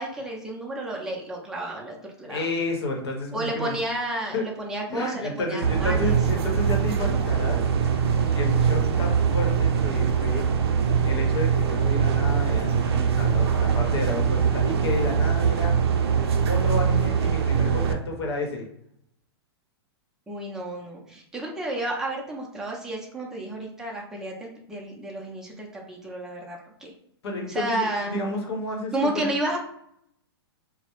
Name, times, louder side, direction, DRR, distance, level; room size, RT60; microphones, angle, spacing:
voice 1, 0.0-2.4 3.3-6.2 20.3-26.9 27.5-28.2 28.9-29.6, right 1 dB, 5° right, -2 dB, 0.4 m, -31 dB
voice 2, 2.3-3.7 4.3-4.5 4.9-7.6 8.3-10.5 11.0-15.8 16.5-18.6 27.2-29.3, left 2 dB, 75° left, 1 dB, 0.8 m, -31 dB
sound 1, 5.6-17.9, right 7 dB, 75° right, 0.4 m, -22 dB
2.2 x 2.0 x 2.9 m, 0.73 s
hypercardioid pair, 125°, 14 cm